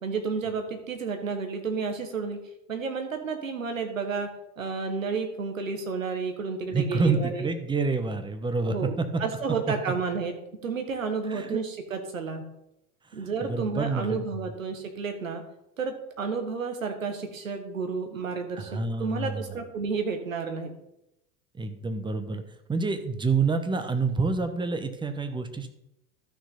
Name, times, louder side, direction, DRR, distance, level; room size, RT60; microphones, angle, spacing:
voice 1, 0.0-2.4 2.7-4.3 4.6-7.5 8.7-8.9 9.2-10.3 10.6-12.4 13.1-15.4 15.8-18.7 19.0-20.7, right 5 dB, 75° right, 6 dB, 1.7 m, -31 dB
voice 2, 6.7-9.2 9.7-9.8 11.3-11.6 13.1-14.4 18.6-19.5 21.5-22.4 22.7-25.7, right 4 dB, 10° right, 8 dB, 1.1 m, -28 dB
13.0 x 6.2 x 4.0 m, 0.83 s
figure-of-eight pair, 80°, 40 cm